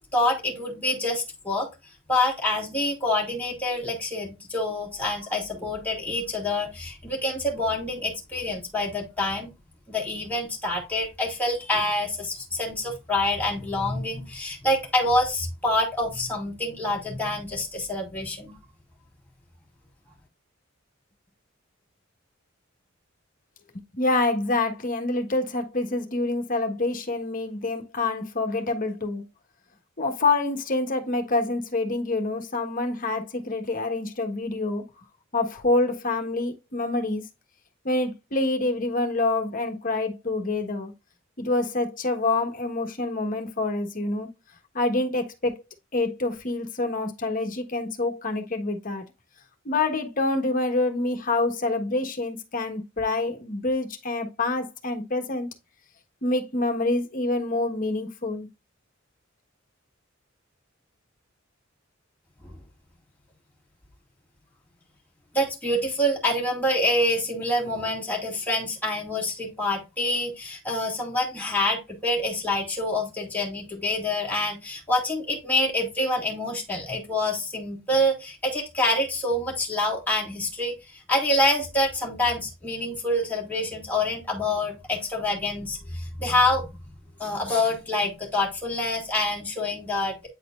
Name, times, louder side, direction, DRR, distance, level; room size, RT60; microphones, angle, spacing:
voice 1, 0.1-1.7 2.1-9.5 9.9-18.6 62.4-62.5 65.3-80.7 81.1-86.7 87.2-90.3, left 1 dB, 10° left, 2.2 m, -26 dB
voice 2, 23.7-29.2 30.0-34.8 35.3-37.2 37.8-40.9 41.4-44.3 44.7-45.5 45.9-49.0 49.6-55.5 56.2-58.5, left 2 dB, 45° left, 1.3 m, -26 dB
9.2 x 4.3 x 2.4 m
head